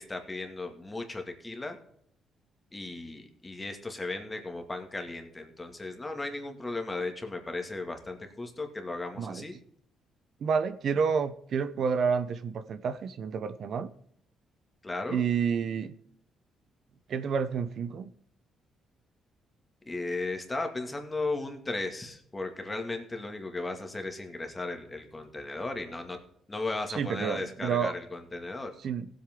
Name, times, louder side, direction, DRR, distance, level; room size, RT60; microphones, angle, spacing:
voice 1, 0.0-1.8 2.7-9.6 14.8-15.2 19.9-26.2 26.5-28.7, left 2 dB, 20° left, 2.1 m, -36 dB
voice 2, 10.4-13.9 15.1-15.9 17.1-18.1 26.9-27.9 28.8-29.1, right 6 dB, 60° right, 0.7 m, -29 dB
17.0 x 8.0 x 3.7 m
cardioid pair, 90°, 0 cm